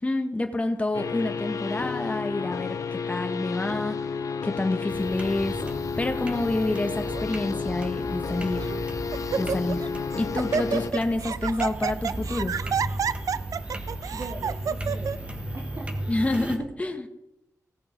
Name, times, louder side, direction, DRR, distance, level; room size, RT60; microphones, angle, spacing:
voice 1, 0.0-4.0 4.4-5.6 6.0-8.7 9.4-9.9 10.1-12.6 16.1-17.1, left 2 dB, 25° left, 5 dB, 1.4 m, -28 dB
sound 1, 0.9-10.9, left 5 dB, 70° left, 0.7 m, -31 dB
sound 2, 4.9-16.6, right 1 dB, 20° right, 1.4 m, -36 dB
Laughter, 6.8-7.2 8.0-8.1 8.6-8.8 9.1-9.9 10.1-15.2, right 7 dB, 80° right, 0.4 m, -29 dB
voice 2, 14.1-15.3 15.5-16.1 16.6-16.7, right 3 dB, 50° right, 0 dB, 1.9 m, -40 dB
17.0 x 6.9 x 5.3 m, 0.85 s
wide cardioid pair, 95°, 6 cm